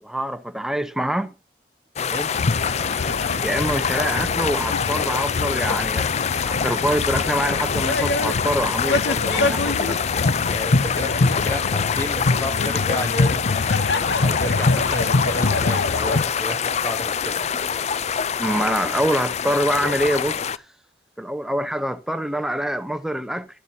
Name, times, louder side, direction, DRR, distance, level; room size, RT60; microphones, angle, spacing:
voice 1, 0.0-1.3 3.4-6.1 6.4-10.0 18.4-20.6 21.2-23.5, right 1 dB, 5° right, 0.7 m, -25 dB
sound 1, 2.0-20.6, left 7 dB, 40° left, 0.4 m, -25 dB
sound 2, 2.3-16.2, left 3 dB, 70° left, 0.7 m, -24 dB
voice 2, 10.4-13.6 14.2-17.4, left 1 dB, 15° left, 1.1 m, -31 dB
12.0 x 11.5 x 2.8 m
head